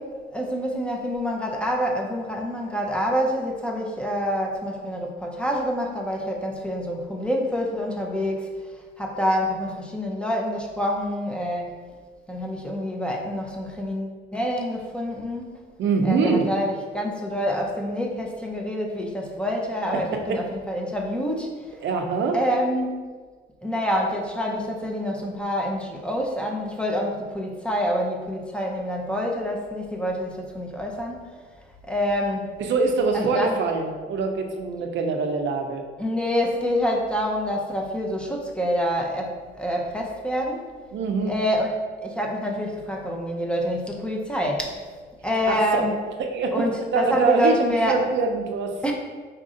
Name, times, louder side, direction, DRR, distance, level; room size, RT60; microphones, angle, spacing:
voice 1, 0.0-8.5 9.0-11.8 12.3-15.6 16.0-21.8 22.3-23.0 23.6-31.2 31.9-32.5 33.1-33.6 36.0-40.7 41.3-41.7 42.0-44.7 45.2-46.0 46.5-48.0 48.8-48.9, equal, 5° left, -1 dB, 0.6 m, -27 dB
voice 2, 15.8-16.5 20.1-20.4 21.8-22.4 32.7-35.8 40.9-41.4 45.5-45.9 46.3-47.6 47.9-48.8, right 4 dB, 65° right, 4 dB, 0.5 m, -24 dB
4.1 x 2.5 x 3.7 m, 1.5 s
cardioid pair, 90°, 20 cm